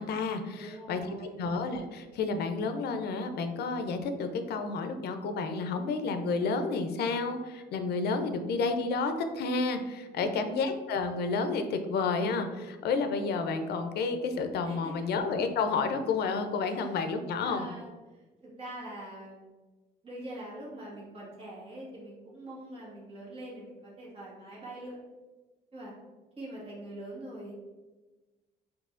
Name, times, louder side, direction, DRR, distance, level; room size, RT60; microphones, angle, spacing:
voice 1, 0.0-17.7, left 4 dB, 65° left, 7 dB, 0.5 m, -31 dB
voice 2, 0.6-1.4 10.1-10.5 14.6-14.9 16.6-17.0 17.4-19.5 20.0-25.1 25.7-25.9 26.4-27.5, right 1 dB, 35° right, -6 dB, 1.4 m, -44 dB
4.7 x 2.7 x 2.5 m, 1.2 s
cardioid pair, 140°, 18 cm